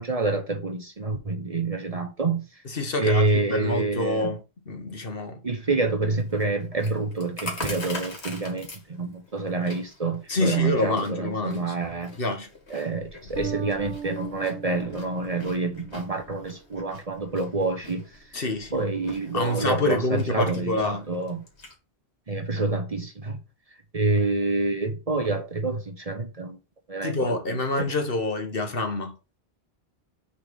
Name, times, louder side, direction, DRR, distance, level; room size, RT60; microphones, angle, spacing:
voice 1, 0.0-2.5 3.0-4.4 5.4-12.1 12.7-18.0 18.7-21.5 22.3-23.4 23.9-26.6 26.9-27.9, right 3 dB, 35° right, 0.9 m, -27 dB
voice 2, 2.6-4.4 4.7-5.4 10.3-11.7 12.2-12.5 18.3-18.7 19.3-21.1 27.0-29.1, left 2 dB, 55° left, 1.5 m, -27 dB
Chewing mastication, 6.2-21.7, left 2 dB, 85° left, 2.3 m, -43 dB
Bass guitar, 13.4-16.4, right 9 dB, 80° right, 1.1 m, -38 dB
6.6 x 4.2 x 5.0 m
omnidirectional pair, 1.1 m